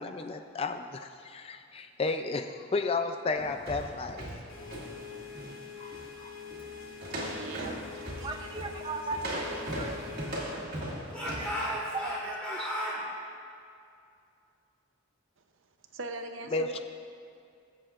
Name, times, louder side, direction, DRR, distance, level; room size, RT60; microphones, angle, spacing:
voice 1, 0.0-4.3 5.8-6.3 16.5-16.8, left 3 dB, 25° left, 7 dB, 0.3 m, -33 dB
sound 1, 3.4-5.6 5.9-6.1 6.5-6.7 7.0-11.6, right 1 dB, 45° right, 2.1 m, -38 dB
sound 2, 4.5-10.6, left 6 dB, 75° left, 2.3 m, -45 dB
voice 2, 7.3-8.5 15.9-16.8, right 2 dB, 65° right, 6 dB, 0.7 m, -41 dB
voice 3, 8.2-10.2 11.3-11.5 11.9-12.2 12.5-12.7, right 3 dB, 20° right, 5 dB, 0.6 m, -38 dB
Speech / Shout, 9.1-10.7 11.1-13.0, equal, 5° left, 2.7 m, -36 dB
21.5 x 7.7 x 2.4 m, 2.4 s
head